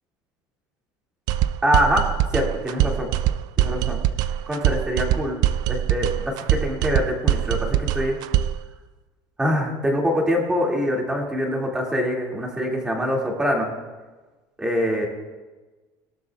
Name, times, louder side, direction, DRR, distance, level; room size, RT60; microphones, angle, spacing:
sound 1, 1.3-8.6, right 11 dB, 50° right, 0.4 m, -23 dB
voice 1, 1.6-2.0 2.3-3.1 3.6-4.0 4.5-5.4 5.7-6.1 6.3-8.2 9.4-13.7 14.6-15.1, equal, 10° right, -1 dB, 2.3 m, -24 dB
21.0 x 12.5 x 2.4 m, 1.2 s
cardioid pair, 170°, 9 cm